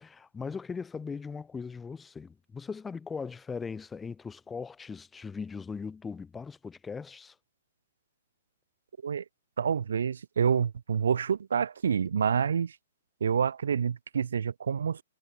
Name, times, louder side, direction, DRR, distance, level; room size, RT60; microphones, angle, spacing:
voice 1, 0.0-7.3, left 5 dB, 10° left, 4.8 m, -39 dB
voice 2, 9.6-12.7 13.2-15.0, right 7 dB, 80° right, 1.2 m, -27 dB
hypercardioid pair, 135°, 0 cm